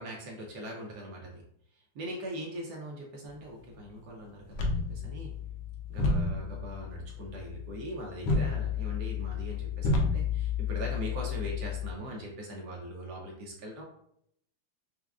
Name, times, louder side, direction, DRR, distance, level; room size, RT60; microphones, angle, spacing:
voice 1, 0.0-1.4 1.7-5.3 5.9-13.8, right 1 dB, 70° right, -1 dB, 1.0 m, -41 dB
sound 1, 4.5-11.9, left 4 dB, 70° left, 1.1 m, -31 dB
5.9 x 2.1 x 2.3 m, 0.73 s
omnidirectional pair, 2.4 m